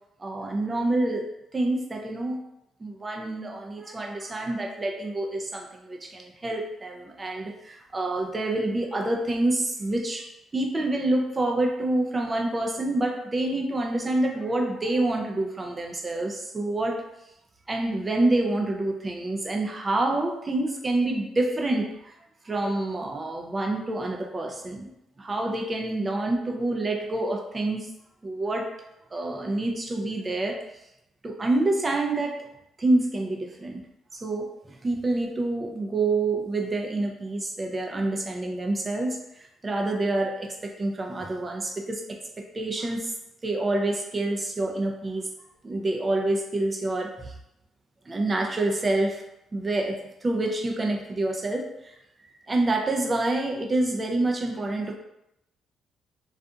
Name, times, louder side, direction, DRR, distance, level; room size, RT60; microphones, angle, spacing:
voice 1, 0.2-1.3 1.5-2.4 2.8-10.3 10.5-17.0 17.7-22.2 22.4-24.9 25.2-27.9 28.2-28.7 29.1-30.6 31.2-32.5 32.8-33.8 34.1-43.1 43.4-45.3 45.6-47.4 48.1-49.2 49.5-52.0 52.5-55.0, right 2 dB, 25° right, 2 dB, 0.4 m, -27 dB
2.6 x 2.4 x 2.3 m, 0.86 s
cardioid pair, 90°, 0 cm